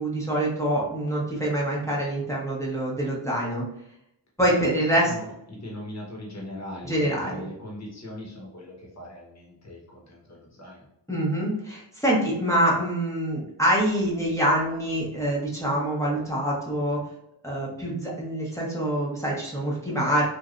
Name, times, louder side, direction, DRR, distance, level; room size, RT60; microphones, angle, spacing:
voice 1, 0.0-3.6 4.4-5.1 6.8-7.4 11.1-17.0 17.4-20.3, right 1 dB, 5° left, -5 dB, 1.0 m, -25 dB
voice 2, 4.4-10.9, left 1 dB, 35° left, -3 dB, 1.2 m, -40 dB
3.2 x 2.5 x 2.5 m, 0.77 s
wide cardioid pair, 75°, 46 cm